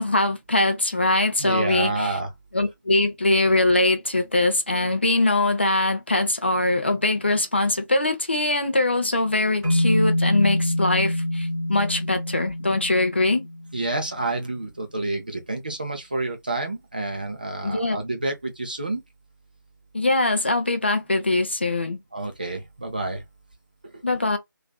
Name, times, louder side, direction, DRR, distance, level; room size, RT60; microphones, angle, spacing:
voice 1, 0.0-2.2 2.5-13.5 17.6-18.0 19.9-22.0 24.0-24.4, left 2 dB, 35° left, 0.4 m, -22 dB
voice 2, 1.4-2.3 13.7-19.0 22.1-23.2 23.8-24.0, right 2 dB, 25° right, 0.4 m, -29 dB
sound 1, 9.6-13.9, left 1 dB, ahead, 1.0 m, -25 dB
2.5 x 2.3 x 2.2 m
figure-of-eight pair, 165°, 11 cm